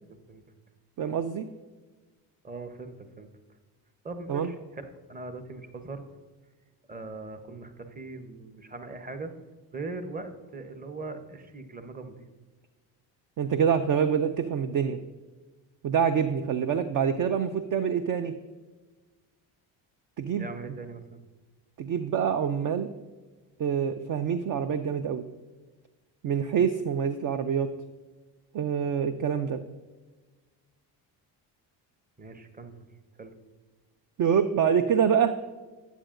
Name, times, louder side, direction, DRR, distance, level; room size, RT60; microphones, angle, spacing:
voice 1, 1.0-1.4 4.3-4.5 13.4-15.0 15.8-18.3 20.2-20.5 21.8-22.9 23.6-25.2 26.2-27.7 28.5-29.6 34.2-35.3, right 7 dB, 40° right, 9 dB, 0.5 m, -26 dB
voice 2, 2.4-3.3 4.0-4.8 5.1-6.0 6.9-9.3 9.7-12.2 20.4-21.2 32.2-32.8 33.2-33.3, right 3 dB, 15° right, 8 dB, 0.9 m, -40 dB
9.8 x 8.0 x 2.5 m, 1.3 s
supercardioid pair, 65°, 50 cm